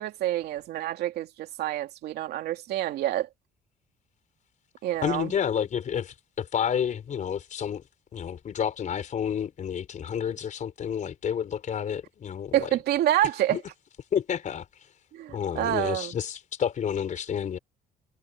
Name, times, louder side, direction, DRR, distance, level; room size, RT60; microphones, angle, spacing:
voice 1, 0.0-3.3 4.8-5.3 12.5-13.6 15.1-16.1, right 13 dB, 75° right, 2.6 m, -27 dB
voice 2, 5.0-7.8 8.1-12.7 13.5-13.6 14.1-14.7 15.3-17.6, left 8 dB, 45° left, 4.4 m, -30 dB
cardioid pair, 110°, 17 cm